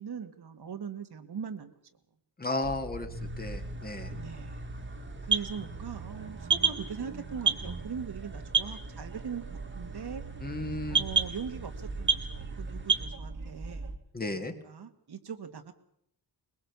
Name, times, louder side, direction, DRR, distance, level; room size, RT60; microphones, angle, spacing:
voice 1, 0.0-1.7 4.2-4.7 5.2-9.4 9.7-10.2 10.9-13.9 14.3-15.7, right 7 dB, 70° right, 7 dB, 1.9 m, -40 dB
voice 2, 2.4-4.2 10.4-11.0 14.1-14.5, left 2 dB, 20° left, 6 dB, 1.7 m, -34 dB
sound 1, 2.6-14.0, right 4 dB, 50° right, 1.6 m, -42 dB
sound 2, 3.1-13.1, right 5 dB, 30° right, 1.9 m, -33 dB
21.5 x 21.5 x 7.0 m, 0.73 s
wide cardioid pair, 175°, 41 cm